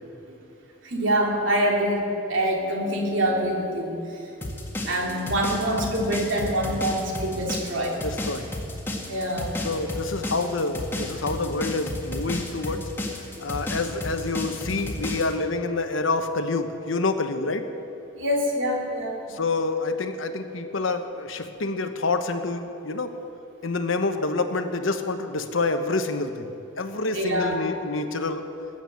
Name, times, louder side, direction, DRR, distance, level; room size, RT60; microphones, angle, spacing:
voice 1, 0.8-4.3 4.9-8.0 8.9-9.5 18.2-19.4 27.1-27.6, right 1 dB, 70° right, -1 dB, 3.0 m, -25 dB
sound 1, 4.4-15.3, left 1 dB, 10° left, 1.9 m, -32 dB
voice 2, 8.0-8.5 9.6-12.9 13.4-17.7 19.3-23.2 23.6-26.5 26.8-28.4, left 3 dB, 80° left, 8 dB, 1.1 m, -27 dB
20.0 x 9.1 x 7.7 m, 3.0 s
head